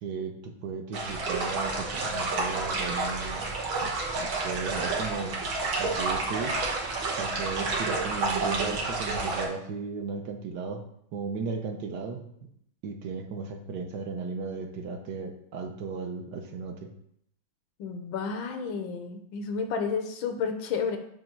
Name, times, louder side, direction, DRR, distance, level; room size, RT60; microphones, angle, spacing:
voice 1, 0.0-3.5 3.8-5.4 5.8-6.6 7.2-10.8 11.1-12.5 12.8-16.9, right 5 dB, 65° right, 4 dB, 1.3 m, -35 dB
sound 1, 0.9-9.5, right 3 dB, 80° right, 2.0 m, -30 dB
voice 2, 17.8-21.0, left 5 dB, 90° left, 6 dB, 1.6 m, -31 dB
7.5 x 3.0 x 5.9 m, 0.70 s
omnidirectional pair, 2.1 m